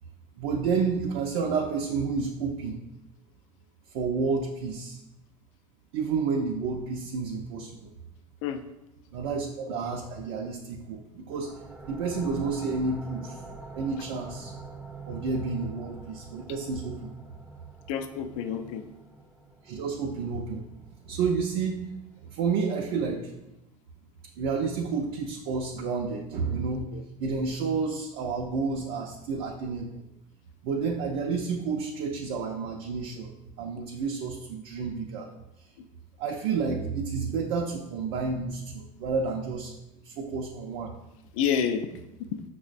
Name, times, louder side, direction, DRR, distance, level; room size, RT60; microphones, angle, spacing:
voice 1, 0.4-2.8 3.9-5.0 5.9-7.9 9.1-11.5 11.9-13.4 13.8-14.5 15.1-17.1 19.6-20.7 21.0-21.8 22.2-23.3 24.4-26.9 27.2-30.0 30.6-33.3 33.6-35.3 36.2-39.7 40.0-40.9, right 5 dB, 65° right, 1 dB, 0.4 m, -30 dB
sound 1, 11.3-22.7, right 3 dB, 5° right, 0.4 m, -47 dB
voice 2, 17.9-18.8 26.9-27.0 41.3-41.9 42.2-42.4, left 8 dB, 70° left, 8 dB, 0.4 m, -29 dB
5.6 x 2.0 x 2.4 m, 0.93 s
hypercardioid pair, 85°, 18 cm